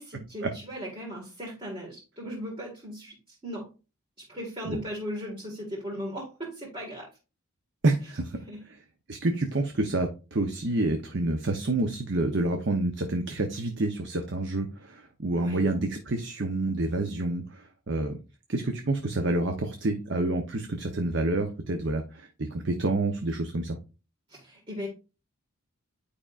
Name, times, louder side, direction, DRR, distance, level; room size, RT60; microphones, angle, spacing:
voice 1, 0.0-3.7 4.3-7.1 8.5-8.6 15.4-15.6 24.3-24.9, equal, 25° right, -4 dB, 1.8 m, -37 dB
voice 2, 7.8-8.4 9.1-18.2 18.5-23.8, right 2 dB, 55° right, 4 dB, 0.8 m, -28 dB
9.6 x 5.0 x 2.5 m, 0.31 s
head